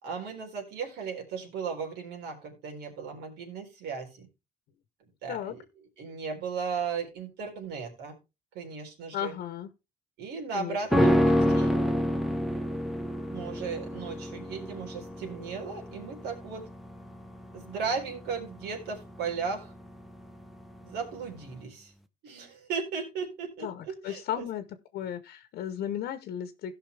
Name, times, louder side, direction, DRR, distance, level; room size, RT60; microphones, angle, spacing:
voice 1, 0.0-4.3 5.2-5.6 6.0-8.1 8.5-9.4 10.2-11.8 13.3-16.6 17.5-19.7 20.8-21.9 22.2-24.5, right 5 dB, 80° right, 3.9 m, -36 dB
voice 2, 9.1-9.7 10.5-10.8 23.6-24.6 24.9-26.7, left 10 dB, 70° left, 1.0 m, -35 dB
sound 1, 10.9-20.3 20.6-20.7, equal, ahead, 0.9 m, -28 dB
17.0 x 5.7 x 3.4 m
cardioid pair, 110°, 17 cm